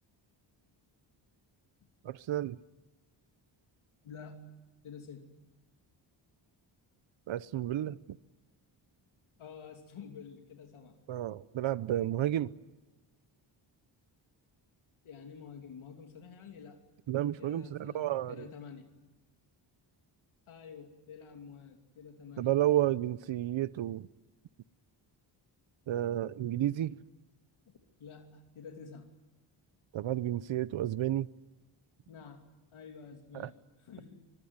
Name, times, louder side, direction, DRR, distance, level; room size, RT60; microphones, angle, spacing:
voice 1, 2.0-2.6 7.3-8.2 11.1-12.5 17.1-18.5 22.4-24.1 25.9-27.0 29.9-31.3 33.3-33.5, right 13 dB, 70° right, 18 dB, 0.8 m, -31 dB
voice 2, 4.0-4.5 4.8-5.3 9.4-11.0 15.0-16.8 17.4-18.9 20.5-22.5 28.0-29.1 32.1-32.4 32.7-34.2, left 6 dB, 80° left, 3 dB, 3.0 m, -49 dB
25.0 x 22.5 x 9.6 m, 1.1 s
cardioid pair, 90°, 48 cm